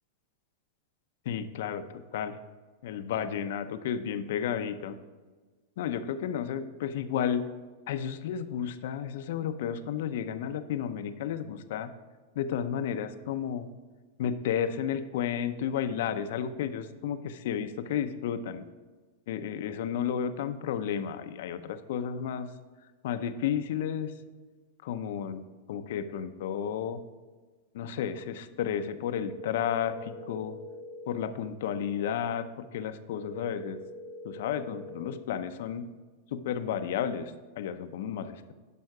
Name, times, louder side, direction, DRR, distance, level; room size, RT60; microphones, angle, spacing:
voice 1, 1.3-2.4 2.8-5.0 5.8-7.4 7.9-11.9 12.4-13.7 14.2-18.6 19.3-22.5 23.0-24.1 24.8-27.0 27.7-30.5 31.1-33.8 34.2-35.9 36.3-38.5, left 8 dB, 70° left, 10 dB, 0.6 m, -32 dB
sound 1, 29.1-31.2 33.1-35.2, left 2 dB, 65° right, 2.0 m, -44 dB
11.0 x 5.5 x 4.8 m, 1.4 s
hypercardioid pair, 135°, 0 cm